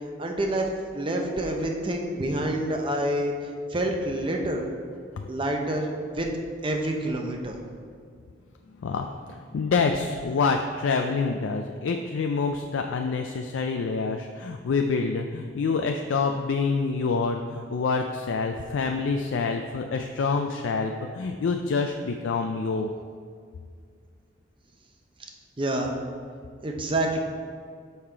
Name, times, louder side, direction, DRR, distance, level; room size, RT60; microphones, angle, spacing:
voice 1, 0.2-0.7 0.9-3.3 3.7-4.7 5.3-6.3 6.6-7.6 25.6-25.9 26.6-27.2, right 1 dB, 25° right, 2 dB, 0.7 m, -27 dB
voice 2, 8.8-22.9, left 4 dB, 85° left, 4 dB, 0.4 m, -27 dB
6.6 x 5.6 x 4.5 m, 2.1 s
head